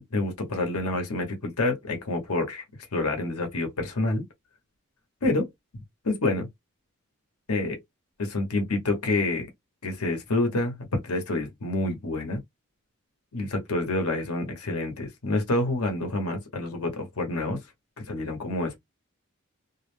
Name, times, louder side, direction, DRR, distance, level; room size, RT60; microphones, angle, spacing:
voice 1, 0.1-2.6 2.9-4.3 5.2-5.5 6.0-6.5 7.5-7.8 8.2-9.5 9.8-12.4 13.3-17.6 18.0-18.8, left 2 dB, 80° left, 0.8 m, -28 dB
2.4 x 2.0 x 3.1 m
head